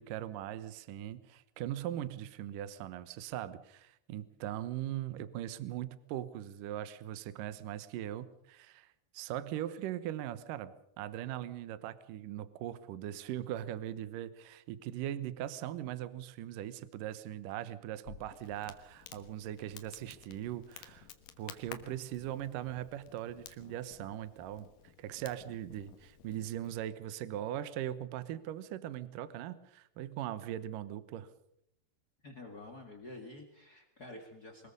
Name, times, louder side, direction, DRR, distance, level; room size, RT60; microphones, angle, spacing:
voice 1, 0.0-21.1 21.4-24.7 25.0-31.3, right 12 dB, 85° right, 14 dB, 1.9 m, -40 dB
Crackle, 18.0-26.7, left 9 dB, 65° left, 2.3 m, -54 dB
voice 2, 32.2-34.7, left 2 dB, 80° left, 4 dB, 0.8 m, -49 dB
24.0 x 20.5 x 5.4 m, 0.77 s
omnidirectional pair, 5.5 m